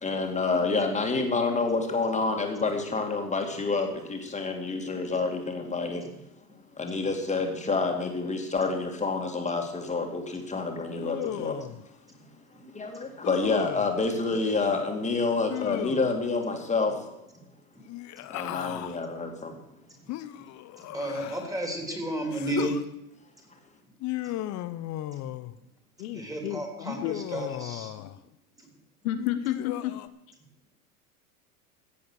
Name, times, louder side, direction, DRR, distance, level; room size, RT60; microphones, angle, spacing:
voice 1, 0.0-6.1 6.8-11.6 12.7-16.9 18.3-19.6, left 3 dB, 15° left, 3 dB, 2.7 m, -28 dB
Human voice, 11.0-11.8 13.2-13.9 15.5-16.3 17.9-19.0 20.1-21.6 22.3-22.8 24.0-25.6 27.0-28.2 29.2-30.1, left 14 dB, 40° left, 0.9 m, -36 dB
voice 2, 20.8-22.7 24.2-24.3 25.2-25.3 26.1-27.9 28.6-28.7, right 1 dB, 10° right, 2 dB, 3.6 m, -33 dB
voice 3, 26.0-27.2 29.0-29.9, left 12 dB, 65° left, 8 dB, 1.3 m, -31 dB
15.0 x 8.5 x 6.5 m, 0.84 s
hypercardioid pair, 100°, 44 cm